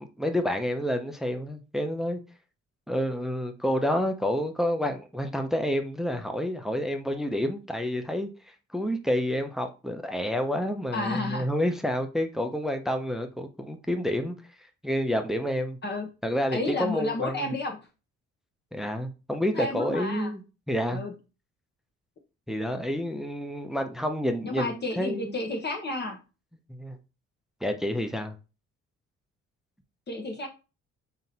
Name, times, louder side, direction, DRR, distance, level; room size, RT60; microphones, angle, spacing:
voice 1, 0.2-2.2 2.9-8.3 8.7-14.4 14.8-15.8 16.2-17.5 18.7-20.4 20.7-21.0 22.5-25.4 26.7-27.0 27.6-28.4, equal, ahead, 0.6 m, -29 dB
voice 2, 10.9-11.5 15.8-16.1 16.5-17.8 19.5-20.3 20.9-21.1 24.4-26.2 30.1-30.5, left 2 dB, 35° left, 1.0 m, -31 dB
3.7 x 2.8 x 4.1 m
cardioid pair, 90°, 30 cm